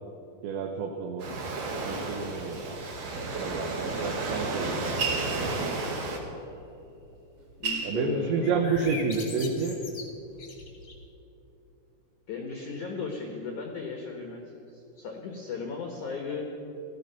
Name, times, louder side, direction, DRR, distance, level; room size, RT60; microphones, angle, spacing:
voice 1, 0.4-1.3 1.8-2.8 3.4-5.1 7.9-9.8, right 5 dB, 75° right, 2 dB, 3.1 m, -30 dB
Waves surf, 1.2-6.2, right 3 dB, 50° right, 2.2 m, -32 dB
sound 1, 5.0-5.9 7.0-7.1 7.4-9.1 9.5-10.2, right 5 dB, 35° right, 5.0 m, -33 dB
voice 2, 7.6-8.6 12.3-14.4 14.7-16.5, left 4 dB, 70° left, 1 dB, 1.9 m, -36 dB
sound 2, 8.4-11.1, left 4 dB, 45° left, 1.7 m, -41 dB
17.5 x 14.0 x 5.8 m, 3.0 s
omnidirectional pair, 5.6 m